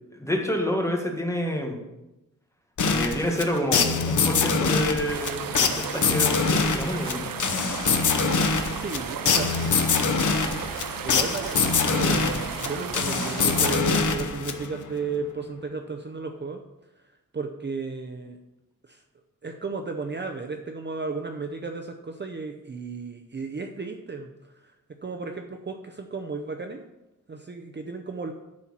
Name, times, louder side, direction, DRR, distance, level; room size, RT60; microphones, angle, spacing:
voice 1, 0.1-1.8 2.9-7.3, equal, 10° left, 1 dB, 1.7 m, -28 dB
sound 1, 2.8-14.9, left 4 dB, 65° left, 0.9 m, -24 dB
sound 2, 5.1-13.8, right 8 dB, 90° right, 0.7 m, -35 dB
voice 2, 8.7-9.5 10.5-11.7 12.0-16.6 17.3-18.4 18.8-19.0 19.4-24.7 25.0-26.9 27.3-28.3, right 4 dB, 35° right, 5 dB, 0.7 m, -34 dB
10.5 x 4.4 x 7.2 m, 0.96 s
wide cardioid pair, 135°, 33 cm